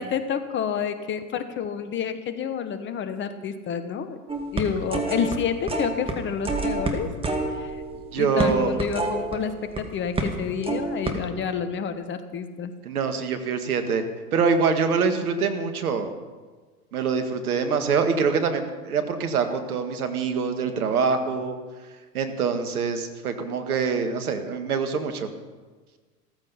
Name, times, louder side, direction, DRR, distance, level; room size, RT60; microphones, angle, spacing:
voice 1, 0.0-4.2 4.5-7.1 7.5-7.8 8.2-12.7, left 7 dB, 25° left, 10 dB, 1.1 m, -29 dB
sound 1, 4.3-5.3 5.7-6.2 6.4-9.8 10.1-10.4 10.6-11.1, right 2 dB, 10° right, 2.1 m, -28 dB
voice 2, 8.1-8.7 12.8-14.0 14.3-16.1 16.9-21.6 22.1-25.3, right 5 dB, 65° right, 7 dB, 2.0 m, -24 dB
15.0 x 14.5 x 5.6 m, 1.4 s
figure-of-eight pair, 95°, 46 cm